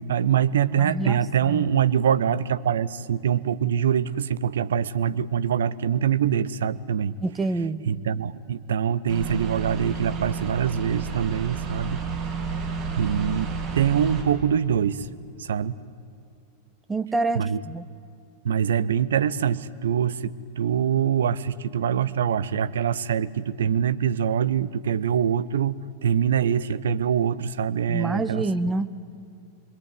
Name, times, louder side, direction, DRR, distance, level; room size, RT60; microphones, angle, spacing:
voice 1, 0.0-7.2 7.8-12.0 13.0-15.1 15.4-15.8 17.3-17.6 18.4-28.5, right 8 dB, 65° right, 15 dB, 0.8 m, -24 dB
voice 2, 0.8-1.7 7.2-7.8 16.9-17.8 27.9-28.9, right 3 dB, 10° right, 11 dB, 1.1 m, -27 dB
sound 1, 9.1-14.2, right 5 dB, 40° right, 6.9 m, -31 dB
27.5 x 22.0 x 9.5 m, 2.5 s
figure-of-eight pair, 90°, 0 cm